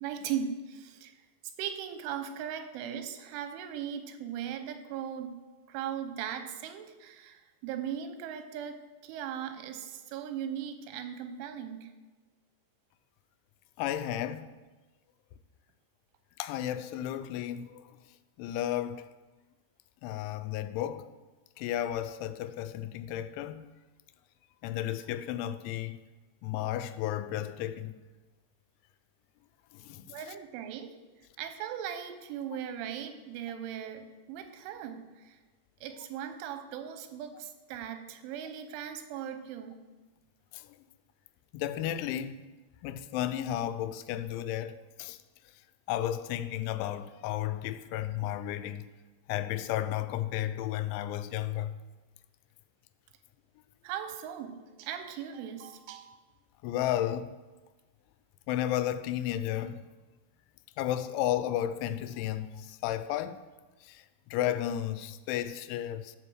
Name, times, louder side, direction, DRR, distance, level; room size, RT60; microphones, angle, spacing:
voice 1, 0.0-1.1 1.6-5.4 5.7-11.9 30.1-35.4 35.8-39.8 53.8-56.1, right 9 dB, 85° right, 3.3 m, -38 dB
voice 2, 13.8-14.5 16.4-18.0 18.4-19.1 20.0-21.1 21.6-23.7 24.6-26.0 26.4-27.9 29.7-30.2 40.5-40.8 41.5-42.4 42.8-45.2 45.9-48.9 49.3-51.8 56.6-57.3 58.5-59.9 60.8-63.4 63.8-64.0 64.3-66.1, left 12 dB, 85° left, 2.9 m, -33 dB
13.5 x 5.1 x 6.3 m
omnidirectional pair, 5.4 m